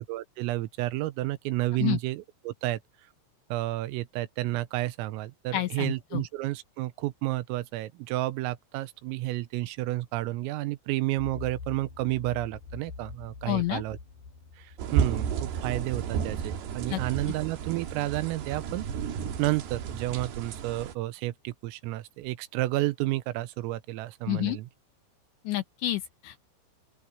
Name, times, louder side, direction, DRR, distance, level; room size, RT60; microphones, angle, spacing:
voice 1, 0.0-2.8 3.5-14.0 14.6-18.9 19.4-24.7, right 17 dB, 85° right, 3.6 m, -31 dB
voice 2, 5.5-6.2 13.5-13.8 16.9-17.0 24.3-24.6 25.4-26.4, left 15 dB, 80° left, 2.7 m, -29 dB
sound 1, 11.2-16.9, left 4 dB, 45° left, 5.3 m, -45 dB
sound 2, 14.8-20.9, right 8 dB, 60° right, 3.7 m, -32 dB
open air
omnidirectional pair, 6.0 m